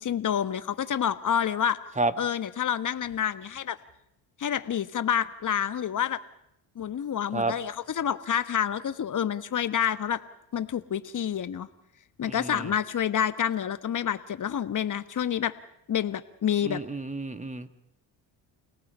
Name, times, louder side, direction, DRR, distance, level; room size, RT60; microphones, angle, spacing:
voice 1, 0.0-1.8 2.2-3.8 4.4-6.2 6.7-10.2 10.5-11.7 12.2-15.5 15.9-16.8, left 9 dB, 45° left, 12 dB, 1.4 m, -28 dB
voice 2, 12.2-12.7 16.6-17.7, right 2 dB, 15° right, 11 dB, 1.7 m, -30 dB
29.5 x 18.5 x 5.6 m, 0.79 s
supercardioid pair, 75°, 43 cm